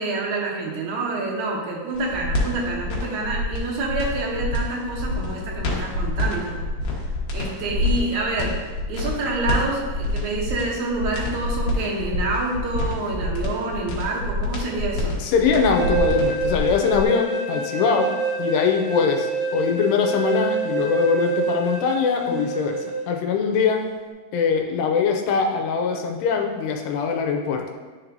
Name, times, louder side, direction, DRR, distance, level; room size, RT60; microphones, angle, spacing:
voice 1, 0.0-6.6 7.3-8.6 8.9-15.2, right 2 dB, 85° right, -3 dB, 1.7 m, -27 dB
sound 1, 1.9-17.0, left 2 dB, 65° left, 2.4 m, -27 dB
voice 2, 15.2-18.1 18.4-23.9 24.3-27.6, left 6 dB, 85° left, 3 dB, 2.7 m, -22 dB
sound 2, 15.4-23.0, right 4 dB, 55° right, 2.7 m, -27 dB
10.0 x 4.4 x 2.6 m, 1.4 s
omnidirectional pair, 4.7 m